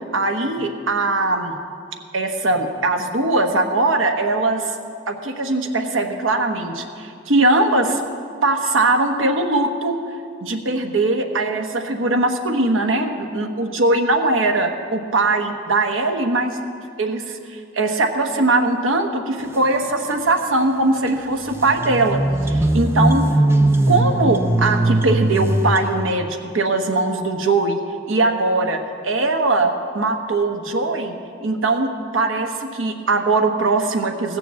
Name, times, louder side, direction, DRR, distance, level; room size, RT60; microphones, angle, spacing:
voice 1, 0.1-1.6 2.1-4.7 5.1-8.0 8.4-10.0 10.4-16.6 17.0-22.2 22.5-23.2 23.9-27.8 28.1-31.1 31.4-34.4, right 2 dB, 90° right, 5 dB, 1.1 m, -20 dB
sound 1, 21.1-21.2 21.4-26.1, right 1 dB, 10° right, 0.4 m, -19 dB
15.5 x 6.8 x 7.5 m, 2.3 s
head